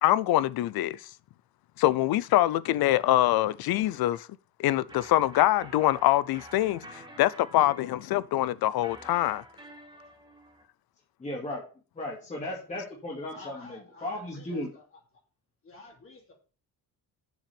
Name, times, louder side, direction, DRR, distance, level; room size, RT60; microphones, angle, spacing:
voice 1, 0.0-1.1 1.8-4.3 4.6-9.4, left 14 dB, 70° left, 0.6 m, -24 dB
sound 1, 4.9-10.6, right 1 dB, 10° right, 1.9 m, -49 dB
voice 2, 11.2-11.6 12.0-14.7, left 1 dB, 20° left, 2.3 m, -35 dB
voice 3, 13.3-14.8 15.6-16.3, left 3 dB, 35° left, 2.8 m, -50 dB
7.4 x 6.0 x 6.8 m
cardioid pair, 170°, 38 cm